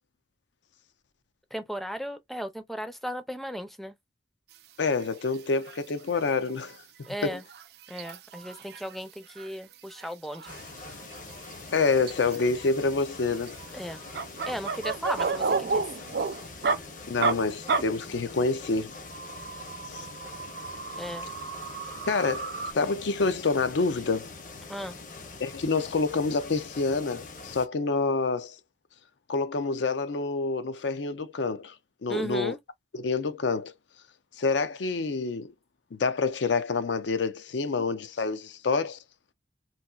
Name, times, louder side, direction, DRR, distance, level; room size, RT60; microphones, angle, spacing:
voice 1, 1.5-3.9 7.1-7.4 7.9-10.5 13.7-14.0 14.5-15.9 21.0-21.3 24.7-25.0 32.1-32.6, equal, ahead, 0.4 m, -36 dB
voice 2, 4.8-6.8 7.2-7.4 11.7-13.6 17.1-18.9 19.9-20.1 22.1-24.3 25.4-28.6 29.3-31.7 32.0-32.6 32.9-33.7 34.4-35.5 35.9-39.0, left 4 dB, 85° left, 0.5 m, -27 dB
sound 1, 4.8-5.0 5.3-5.8 6.1-6.2 6.6-6.7 7.0-9.0 9.3-9.5 9.7-11.5 11.8-12.6 13.1-16.8 17.2-17.3 17.7-17.8 18.9-22.7, right 4 dB, 60° right, 0.4 m, -32 dB
sound 2, 10.5-27.7, left 3 dB, 45° left, 0.7 m, -44 dB
4.1 x 2.4 x 2.2 m
head